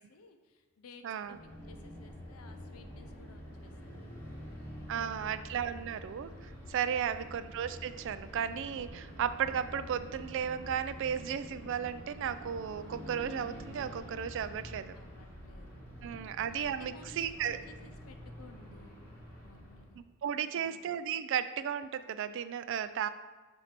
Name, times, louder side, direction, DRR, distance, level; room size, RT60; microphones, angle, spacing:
voice 1, 0.0-5.4 7.0-7.4 14.9-18.9 19.4-20.0 20.4-20.8, left 3 dB, 85° left, 7 dB, 0.6 m, -57 dB
voice 2, 1.0-1.4 4.9-15.0 16.0-17.6 20.0-23.1, right 8 dB, 60° right, 12 dB, 0.3 m, -35 dB
sound 1, 1.3-20.0, equal, 10° left, 1.4 m, -47 dB
7.3 x 2.7 x 5.9 m, 1.2 s
head